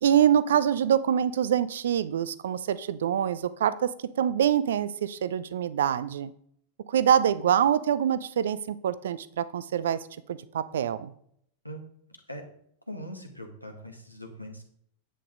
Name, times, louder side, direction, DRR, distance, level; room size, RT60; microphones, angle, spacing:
voice 1, 0.0-3.9 4.2-6.3 6.9-11.1, right 9 dB, 60° right, 16 dB, 0.6 m, -25 dB
voice 2, 12.9-14.6, equal, 90° left, 3 dB, 1.8 m, -41 dB
10.0 x 8.5 x 3.8 m, 0.67 s
figure-of-eight pair, 90°, 0 cm